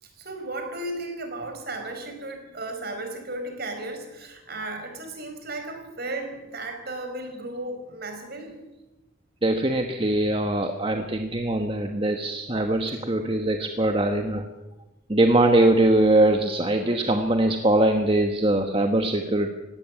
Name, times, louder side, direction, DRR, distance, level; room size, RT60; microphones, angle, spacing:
voice 1, 0.0-8.6, right 2 dB, 45° right, 5 dB, 4.8 m, -35 dB
voice 2, 9.4-14.4 15.1-19.5, right 1 dB, 25° right, 5 dB, 1.3 m, -22 dB
18.5 x 16.5 x 9.6 m, 1.0 s
head